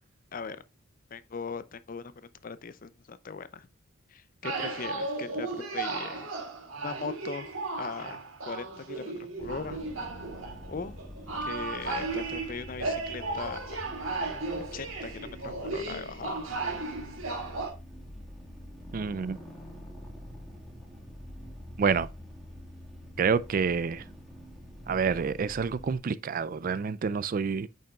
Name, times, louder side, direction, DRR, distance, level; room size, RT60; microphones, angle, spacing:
voice 1, 1.1-3.7 4.1-6.3 6.8-7.5 7.8-8.2 8.4-9.8 10.7-11.0 11.4-13.8 14.6-16.4, left 5 dB, 40° left, 0.5 m, -39 dB
sound 1, 4.4-17.7, right 3 dB, 80° right, 2.3 m, -35 dB
sound 2, 9.4-26.0, equal, ahead, 1.8 m, -46 dB
voice 2, 18.9-19.4 21.8-22.1 23.2-24.0 24.9-27.7, right 5 dB, 40° right, 0.3 m, -28 dB
8.8 x 5.6 x 2.3 m
head